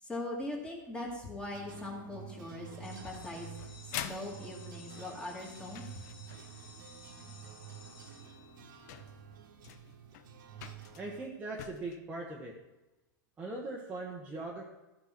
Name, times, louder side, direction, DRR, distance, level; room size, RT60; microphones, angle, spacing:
voice 1, 0.0-5.8, left 1 dB, 10° left, -1 dB, 2.3 m, -41 dB
sound 1, 1.5-11.3, right 8 dB, 70° right, 1.7 m, -50 dB
sound 2, 2.8-9.0, left 6 dB, 80° left, 2.6 m, -56 dB
sound 3, 3.0-6.6 8.0-8.1 8.6-8.7 8.9-12.0, left 10 dB, 50° left, 0.8 m, -46 dB
voice 2, 11.0-12.6 13.4-14.6, right 2 dB, 10° right, -3 dB, 1.3 m, -40 dB
13.5 x 5.5 x 6.0 m, 1.0 s
supercardioid pair, 150°, 11 cm